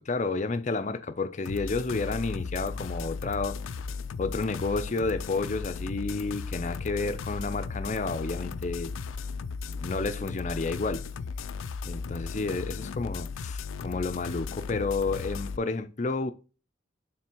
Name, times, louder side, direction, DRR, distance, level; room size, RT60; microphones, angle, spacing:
voice 1, 0.0-3.6 4.2-8.9 9.8-11.1 11.8-16.3, left 3 dB, 35° left, 0.6 m, -31 dB
sound 1, 1.5-15.6, left 5 dB, 90° left, 0.4 m, -36 dB
6.1 x 3.8 x 4.5 m
head